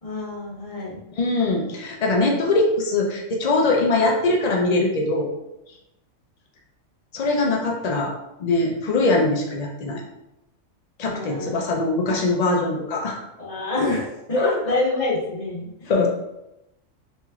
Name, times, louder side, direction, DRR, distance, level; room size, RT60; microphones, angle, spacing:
voice 1, 0.0-1.0 11.0-11.6 13.4-15.9, left 2 dB, 30° left, -6 dB, 1.2 m, -26 dB
voice 2, 1.2-5.3 7.1-8.1 8.4-10.0 11.0-13.2 14.4-14.8 15.9-16.1, left 2 dB, 70° left, 0 dB, 0.3 m, -22 dB
3.2 x 3.1 x 3.5 m, 0.90 s
omnidirectional pair, 1.4 m